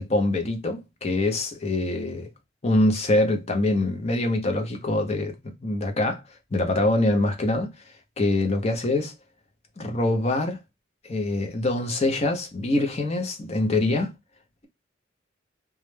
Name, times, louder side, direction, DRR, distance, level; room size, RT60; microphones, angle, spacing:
voice 1, 0.0-2.3 2.6-6.2 6.5-7.7 8.2-9.1 9.8-10.6 11.0-14.1, left 2 dB, 35° left, 0.5 m, -24 dB
2.2 x 2.1 x 3.1 m
head